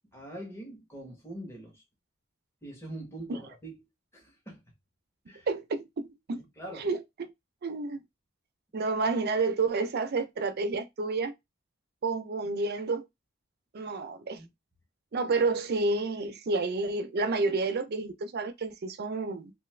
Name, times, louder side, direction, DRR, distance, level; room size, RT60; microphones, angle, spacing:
voice 1, 0.1-1.8 2.6-3.7 4.1-4.6 5.3-5.5 6.3-6.9 14.3-14.5, right 1 dB, 15° left, 1.0 m, -43 dB
voice 2, 5.5-6.4 6.7-7.3 7.6-8.0 8.7-11.3 12.0-13.0 13.7-14.4 15.1-19.5, right 3 dB, 50° right, 0.5 m, -30 dB
2.5 x 2.4 x 3.2 m
head